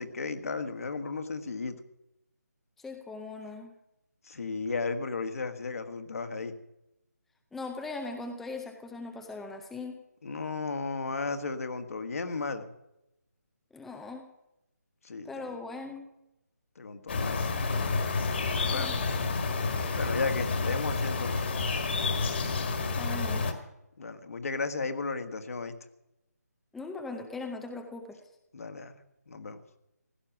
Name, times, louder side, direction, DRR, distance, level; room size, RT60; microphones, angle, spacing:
voice 1, 0.0-1.8 4.2-6.5 10.2-12.7 15.0-15.6 16.7-18.0 18.7-18.9 19.9-21.4 24.0-25.7 28.5-29.0 29.3-29.6, left 4 dB, 55° left, 8 dB, 1.7 m, -34 dB
voice 2, 2.8-3.7 7.5-10.0 13.7-14.3 15.2-16.1 18.7-19.2 22.9-23.5 26.7-28.2, left 3 dB, ahead, 4 dB, 0.5 m, -40 dB
sound 1, 17.1-23.5, left 4 dB, 40° left, 1.9 m, -29 dB
16.0 x 12.5 x 6.0 m, 0.88 s
figure-of-eight pair, 165°, 9 cm